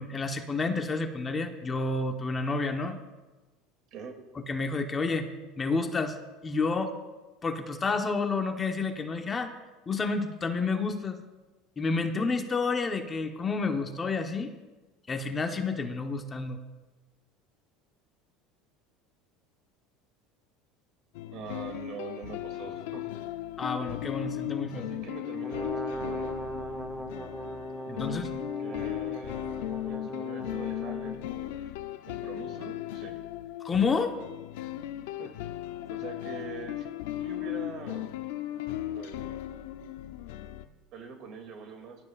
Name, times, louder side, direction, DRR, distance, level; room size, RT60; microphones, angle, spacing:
voice 1, 0.0-3.0 4.5-5.3 5.6-6.2 6.4-6.9 7.4-9.5 9.9-11.2 11.8-14.5 15.1-16.6 23.6-24.8 27.9-28.3 33.6-34.1, left 4 dB, 20° left, 5 dB, 1.1 m, -29 dB
sound 1, 21.2-40.7, left 14 dB, 85° left, 0.6 m, -37 dB
voice 2, 21.3-23.0 24.7-26.3 28.6-29.5 29.8-31.7 32.1-33.1 35.2-35.3 35.9-36.9 37.2-38.1 38.9-39.2 40.9-42.0, right 5 dB, 50° right, 4 dB, 2.6 m, -43 dB
Brass instrument, 25.4-31.2, right 1 dB, 5° right, 0.9 m, -38 dB
19.5 x 12.0 x 2.5 m, 1.2 s
supercardioid pair, 125°, 0 cm